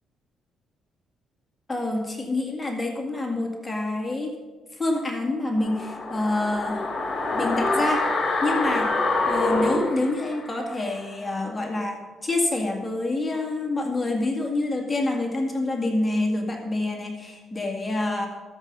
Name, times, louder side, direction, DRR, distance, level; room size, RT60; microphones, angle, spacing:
voice 1, 1.7-4.4 4.7-6.9 7.3-8.1 8.4-8.9 9.3-18.3, left 2 dB, 20° left, 1 dB, 2.1 m, -27 dB
sound 1, 5.6-10.7 11.0-11.1, left 3 dB, 40° left, 2.9 m, -26 dB
13.0 x 7.5 x 5.5 m, 1.3 s
cardioid pair, 90°, 0 cm